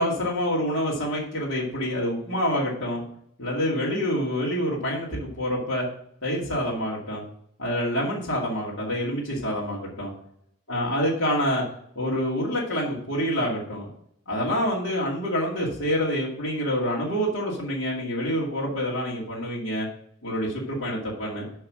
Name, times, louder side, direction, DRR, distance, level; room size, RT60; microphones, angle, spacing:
voice 1, 0.0-3.0 3.4-5.8 6.2-7.2 7.6-10.1 10.7-11.6 12.0-13.9 14.3-19.9 20.2-21.4, equal, 65° left, -6 dB, 2.5 m, -27 dB
6.2 x 6.0 x 6.3 m, 0.68 s
head